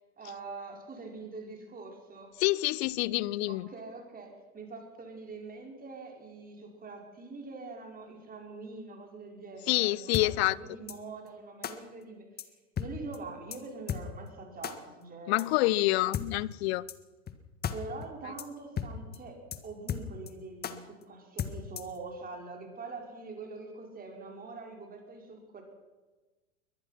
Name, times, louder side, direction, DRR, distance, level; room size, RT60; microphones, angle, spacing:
voice 1, 0.2-2.3 3.5-12.3 12.8-15.4 17.7-19.4 19.6-25.6, right 3 dB, 20° right, 5.4 m, -44 dB
voice 2, 2.4-3.7 9.7-10.6 15.3-16.9, left 19 dB, 50° left, 0.7 m, -27 dB
sound 1, 10.1-10.3 10.9-11.0 11.6-11.7 12.4-12.5 12.8-12.9 13.1-13.2 13.5-13.6 13.9-14.0 14.6-14.7 15.4-15.5 16.1-16.3 16.9-17.0 17.3-17.4 17.6-17.8 18.0-18.1 18.4-18.5 18.8-18.9 19.1-19.2 19.5-19.6 19.9-20.3 20.6-20.7 21.4-22.0, left 8 dB, 20° left, 1.7 m, -34 dB
23.0 x 20.0 x 5.9 m
hypercardioid pair, 100°, 42 cm